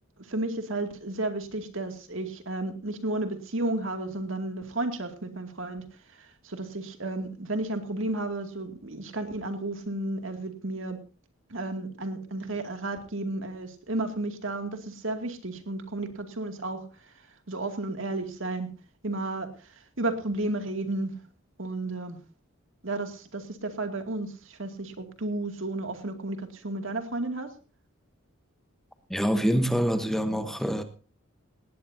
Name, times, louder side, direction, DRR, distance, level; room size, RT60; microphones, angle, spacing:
voice 1, 0.3-5.9 6.2-11.0 11.5-17.1 17.5-18.7 19.0-21.2 21.6-22.2 22.8-27.5, right 2 dB, 70° right, 6 dB, 2.3 m, -33 dB
voice 2, 29.1-30.8, equal, ahead, 8 dB, 1.0 m, -25 dB
19.0 x 17.5 x 2.7 m, 0.35 s
head